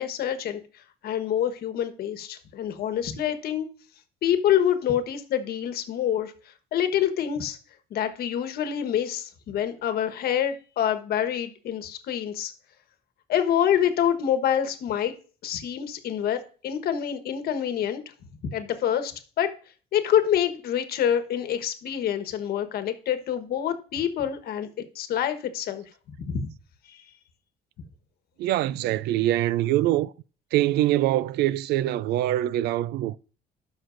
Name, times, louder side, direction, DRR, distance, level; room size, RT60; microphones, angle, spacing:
voice 1, 0.0-3.7 4.2-7.6 7.9-12.5 13.3-15.1 15.4-18.0 18.5-19.1 19.4-19.5 19.9-24.7 24.9-25.8 26.3-26.4 26.9-27.0, left 10 dB, 65° left, 1.2 m, -26 dB
voice 2, 28.4-30.1 30.5-33.2, right 14 dB, 75° right, 0.4 m, -24 dB
12.5 x 6.1 x 2.6 m
cardioid pair, 110°, 17 cm